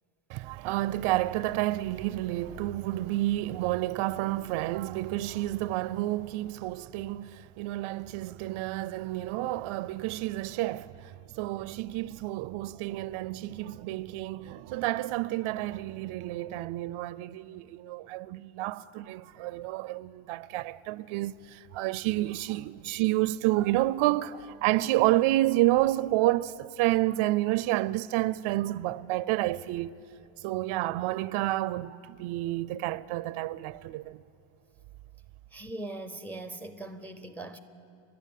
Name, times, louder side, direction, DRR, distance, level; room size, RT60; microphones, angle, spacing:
voice 1, 0.3-29.9 30.4-34.2, right 16 dB, 75° right, 0.6 m, -29 dB
voice 2, 35.5-37.6, right 2 dB, 5° left, 0.4 m, -40 dB
30.0 x 11.5 x 8.4 m
cardioid pair, 180°, 50 cm